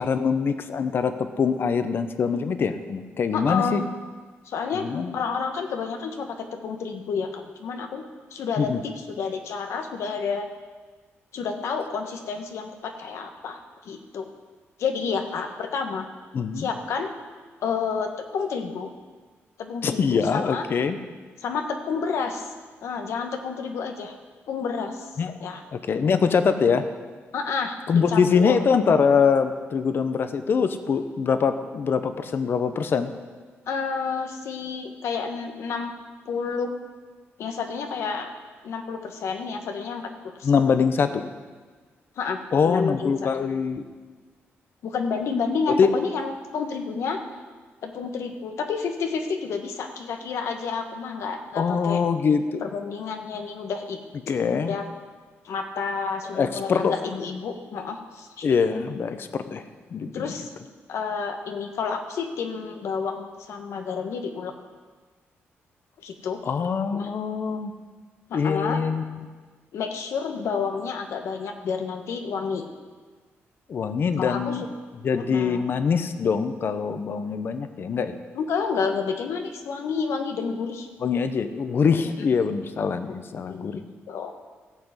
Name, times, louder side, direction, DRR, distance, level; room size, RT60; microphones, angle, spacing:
voice 1, 0.0-3.8 4.7-5.1 8.6-8.8 16.3-16.7 19.8-21.0 25.2-25.3 25.7-26.8 27.9-33.1 40.4-41.2 42.5-43.8 45.8-45.9 51.6-52.6 54.3-54.7 56.3-56.9 58.4-59.6 59.9-60.3 66.4-67.7 68.3-69.0 73.7-74.7 75.0-78.1 81.0-83.8, left 6 dB, 50° left, 10 dB, 0.8 m, -23 dB
voice 2, 3.3-3.9 4.4-4.9 5.1-8.0 8.3-10.5 11.3-13.6 13.8-14.3 14.8-16.1 16.6-17.1 17.6-18.9 19.6-20.6 21.4-22.5 22.8-24.2 24.5-25.1 25.4-25.6 27.3-28.6 33.7-35.9 36.2-36.7 37.4-38.3 38.6-40.5 42.2-43.1 44.8-47.2 47.8-52.0 52.6-54.0 54.6-54.8 55.4-58.5 60.1-60.5 60.9-64.5 66.0-66.4 66.9-67.1 68.3-68.8 69.7-72.7 74.2-74.7 75.2-75.7 78.3-80.9 83.1-84.3, left 5 dB, 80° left, 5 dB, 1.4 m, -30 dB
16.0 x 5.9 x 8.1 m, 1.4 s
cardioid pair, 125°, 5 cm